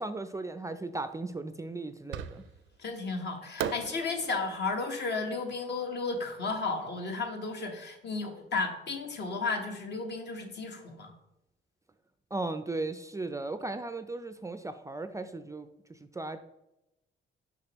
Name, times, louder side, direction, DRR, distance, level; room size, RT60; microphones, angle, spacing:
voice 1, 0.0-2.4 12.3-16.4, right 2 dB, 15° right, 10 dB, 0.3 m, -36 dB
Fireworks, 2.1-2.8 3.6-6.7, right 9 dB, 80° right, 0.5 m, -40 dB
voice 2, 2.8-11.1, left 3 dB, 60° left, 4 dB, 1.2 m, -33 dB
6.3 x 5.2 x 3.0 m, 0.90 s
cardioid pair, 90°, 20 cm